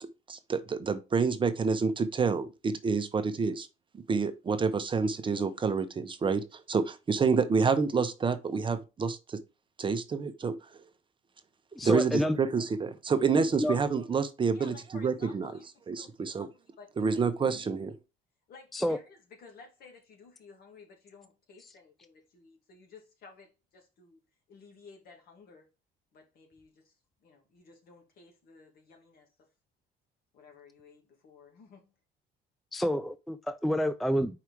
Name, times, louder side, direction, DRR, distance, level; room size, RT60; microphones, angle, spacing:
voice 1, 0.0-3.7 3.9-9.4 9.8-10.6 11.8-15.6 15.9-16.5 17.0-18.0, right 5 dB, 30° right, 0.8 m, -28 dB
voice 2, 11.7-12.4 13.6-13.7 18.7-19.0 21.6-21.7 32.7-34.4, equal, ahead, 0.4 m, -29 dB
voice 3, 14.5-15.7 15.9-16.5 16.8-17.2 18.5-19.0 19.4-23.5 23.7-24.2 24.5-25.7 26.1-26.7 27.2-29.3 30.3-31.8, left 4 dB, 65° left, 2.2 m, -54 dB
4.9 x 4.8 x 4.5 m
cardioid pair, 110°, 17 cm